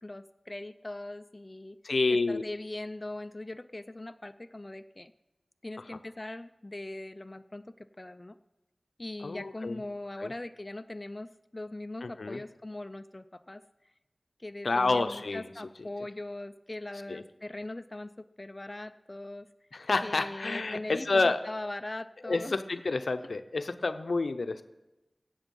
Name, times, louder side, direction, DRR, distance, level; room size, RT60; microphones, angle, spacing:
voice 1, 0.0-1.8 2.3-5.1 5.6-8.4 9.0-13.6 14.4-19.5 20.0-22.5, left 2 dB, 30° left, 10 dB, 0.4 m, -40 dB
voice 2, 1.8-2.4 9.2-9.8 10.2-10.3 12.0-12.4 14.6-15.5 17.1-17.2 19.7-21.4 22.2-24.6, left 3 dB, 85° left, 10 dB, 0.6 m, -29 dB
16.5 x 7.0 x 5.4 m, 1.0 s
wide cardioid pair, 65°, 0 cm